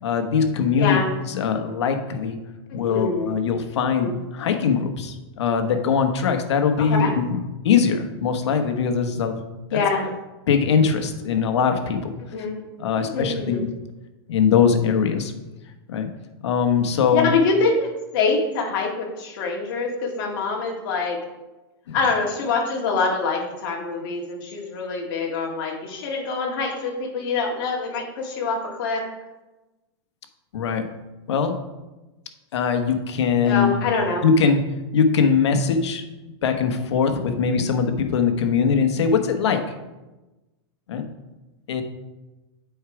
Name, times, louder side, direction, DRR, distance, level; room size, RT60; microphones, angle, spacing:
voice 1, 0.0-1.0 1.3-2.4 2.7-9.4 9.7-9.8 10.5-12.1 12.8-13.5 14.3-15.3 15.9-16.1 16.4-17.3 21.9-22.0 30.5-30.9 31.3-31.6 32.5-33.7 34.2-34.6 34.9-36.0 36.4-39.8 40.9-41.1 41.7-41.8, left 6 dB, 85° left, 7 dB, 1.1 m, -21 dB
voice 2, 0.8-1.1 2.7-3.3 4.0-4.1 6.8-7.1 9.7-10.1 12.2-12.6 13.0-13.6 17.1-21.2 21.9-29.0 33.4-34.2, left 4 dB, 50° left, -1 dB, 1.9 m, -25 dB
8.1 x 4.7 x 4.8 m, 1.1 s
supercardioid pair, 165°, 14 cm